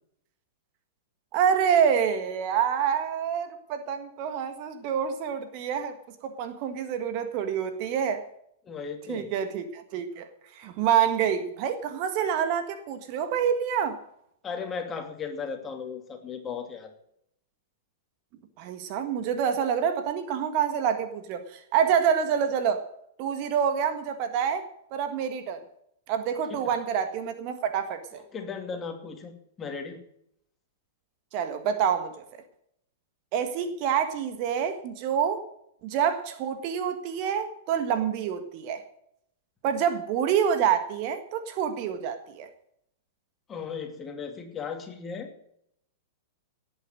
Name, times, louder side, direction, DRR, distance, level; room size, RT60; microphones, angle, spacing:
voice 1, 1.3-5.9 6.2-8.2 9.1-10.3 10.5-14.0 18.6-22.8 23.2-24.7 24.9-25.6 26.1-28.2 31.3-32.1 33.3-35.4 35.8-38.8 39.6-42.5, right 8 dB, 40° right, 8 dB, 1.6 m, -27 dB
voice 2, 8.6-9.3 14.4-16.9 28.1-30.0 43.5-45.3, left 5 dB, 20° left, 4 dB, 2.6 m, -36 dB
18.0 x 8.8 x 6.4 m, 0.73 s
figure-of-eight pair, 100°, 0 cm